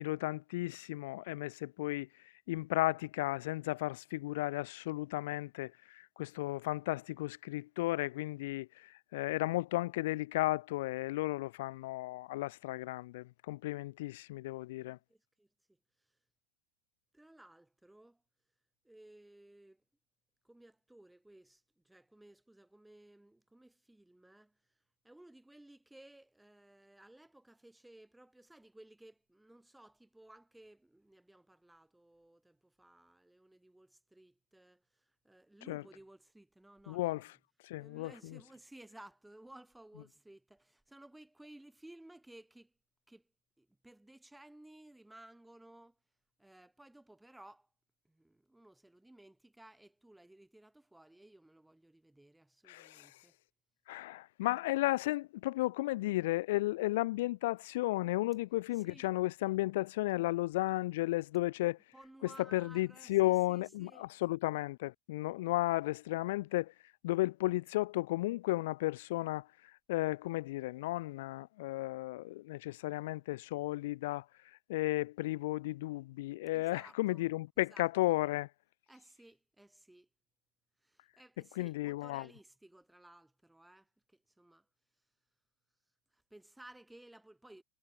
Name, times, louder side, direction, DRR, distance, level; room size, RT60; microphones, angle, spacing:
voice 1, 0.0-2.1 2.5-15.0 35.7-35.8 36.9-37.2 37.7-38.4 52.7-53.1 53.9-61.8 62.5-66.7 67.0-69.5 69.9-74.3 74.7-78.5 81.6-82.3, left 18 dB, 50° left, 0.4 m, -34 dB
voice 2, 14.7-16.2 17.1-18.2 18.8-19.8 20.4-37.3 37.8-42.7 43.1-43.3 43.6-46.0 46.4-47.7 48.1-53.4 58.7-59.1 61.9-64.1 76.5-77.2 77.6-78.1 78.9-80.1 80.8-84.7 86.1-87.6, right 1 dB, 5° right, 5.2 m, -58 dB
figure-of-eight pair, 90°, 0 cm